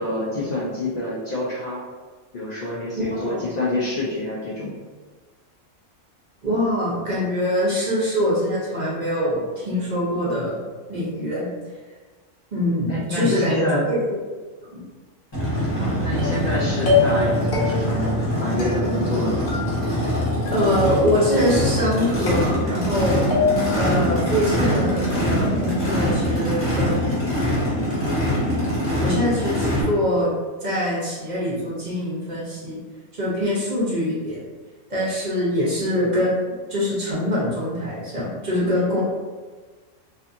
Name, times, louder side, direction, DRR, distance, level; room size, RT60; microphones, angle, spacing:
voice 1, 0.0-1.8 2.3-4.7 12.9-13.9 15.8-19.4, left 1 dB, 70° left, -5 dB, 0.4 m, -27 dB
voice 2, 3.0-3.5 6.4-10.6 10.9-11.5 12.5-14.0 14.7-14.8 20.5-23.2 23.7-27.1 27.8-28.0 29.0-30.3 30.6-32.8 33.1-34.4 34.9-39.0, equal, 45° right, -7 dB, 0.7 m, -24 dB
Race car auto racing / Idling / Accelerating revving vroom, 15.3-29.8, equal, 25° left, 0.9 m, -23 dB
sound 1, 16.2-16.5 16.9-17.3 17.5-18.0 18.6-19.2 19.5-20.1 20.5-21.0 21.4-21.9 22.3-23.0 23.3-23.8, left 5 dB, 55° left, 0.8 m, -25 dB
2.5 x 2.5 x 2.5 m, 1.4 s
omnidirectional pair, 1.3 m